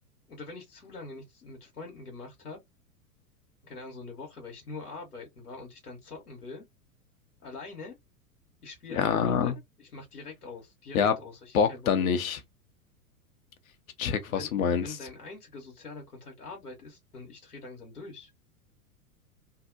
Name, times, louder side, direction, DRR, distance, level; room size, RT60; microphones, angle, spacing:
voice 1, 0.3-2.6 3.6-6.6 7.4-7.9 8.6-11.9 14.1-18.3, left 3 dB, 90° left, 0.9 m, -44 dB
voice 2, 8.9-9.5 10.9-11.1 11.5-12.4 14.0-14.8, left 7 dB, 65° left, 0.7 m, -25 dB
2.7 x 2.0 x 2.5 m
figure-of-eight pair, 95°, 45 cm